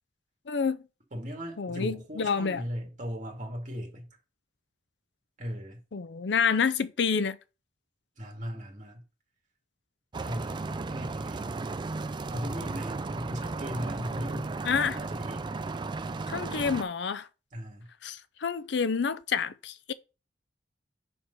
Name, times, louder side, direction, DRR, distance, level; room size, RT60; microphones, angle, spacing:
voice 1, 0.5-0.8 1.6-2.6 5.9-7.4 14.7-15.0 16.3-17.3 18.0-19.9, left 6 dB, 70° left, 0.5 m, -28 dB
voice 2, 1.1-4.1 5.4-5.8 8.2-9.0 10.2-11.5 12.3-14.6 14.9-15.5 17.5-17.9, equal, 40° right, 2.1 m, -38 dB
sound 1, 10.1-16.8, right 3 dB, 25° right, 0.3 m, -35 dB
5.3 x 4.6 x 5.5 m
head